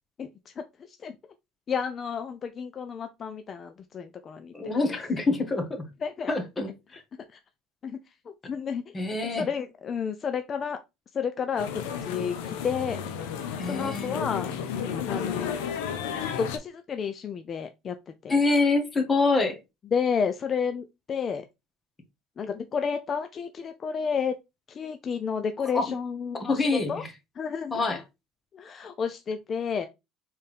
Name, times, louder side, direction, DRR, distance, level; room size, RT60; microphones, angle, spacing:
voice 1, 1.7-4.5 6.0-6.3 7.3-7.4 7.8-8.0 8.5-8.9 9.2-10.8 11.1-13.0 13.7-14.6 15.1-15.6 16.2-18.0 18.2-18.3 19.9-21.4 22.4-24.4 24.7-27.0 27.4-27.8 28.5-29.9, left 6 dB, 40° left, 0.5 m, -31 dB
voice 2, 4.5-5.8 6.3-7.0 8.9-9.5 13.6-14.2 18.3-19.6 25.7-25.9 26.5-27.1 27.7-28.0, left 3 dB, 25° left, 1.5 m, -26 dB
korea flohmarkt, 11.6-16.6, left 7 dB, 85° left, 0.8 m, -32 dB
4.4 x 3.5 x 3.4 m
supercardioid pair, 90°, 0 cm